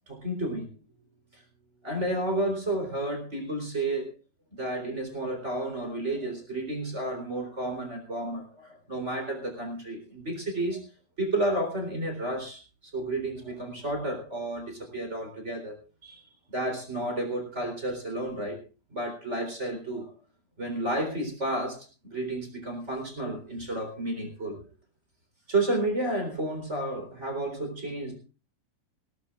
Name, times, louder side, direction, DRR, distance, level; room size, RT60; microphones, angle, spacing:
voice 1, 0.1-0.7 1.3-1.4 1.8-4.1 4.5-10.8 11.2-15.8 16.0-18.6 18.9-20.1 20.6-24.6 25.5-28.2, right 1 dB, 20° right, 5 dB, 3.9 m, -31 dB
20.5 x 17.5 x 2.4 m, 0.33 s
omnidirectional pair, 3.9 m